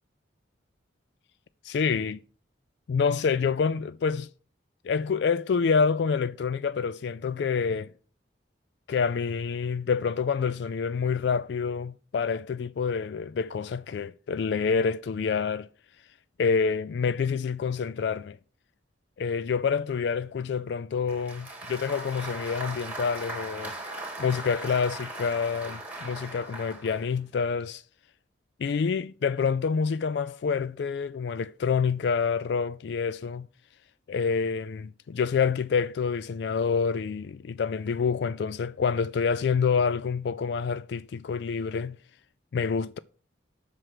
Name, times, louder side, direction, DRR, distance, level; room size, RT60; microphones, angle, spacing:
voice 1, 1.6-2.2 2.9-4.3 4.8-7.9 8.9-15.7 16.4-18.4 19.2-23.7 24.2-27.8 28.6-33.5 34.1-42.0 42.5-43.0, left 5 dB, 60° left, 0.3 m, -27 dB
Applause, 21.1-27.1, right 2 dB, 10° right, 2.4 m, -39 dB
7.7 x 6.1 x 6.5 m
head